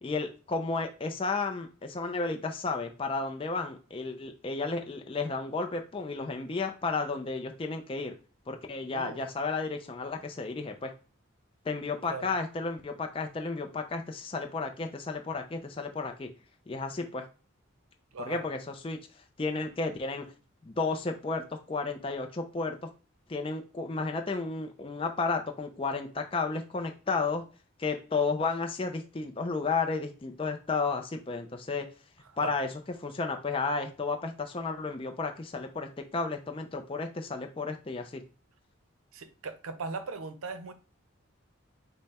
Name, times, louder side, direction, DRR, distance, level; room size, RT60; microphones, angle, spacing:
voice 1, 0.0-8.1 8.5-10.9 11.7-16.3 16.7-17.3 18.3-19.0 19.4-20.3 20.7-22.8 23.3-27.4 27.8-31.9 32.4-32.7 33.0-38.2, left 4 dB, 25° left, 0.4 m, -32 dB
voice 2, 8.9-9.2 12.1-12.3 18.1-18.4 32.3-32.5 39.1-40.7, right 4 dB, 80° right, 0.6 m, -38 dB
5.3 x 2.1 x 4.1 m
head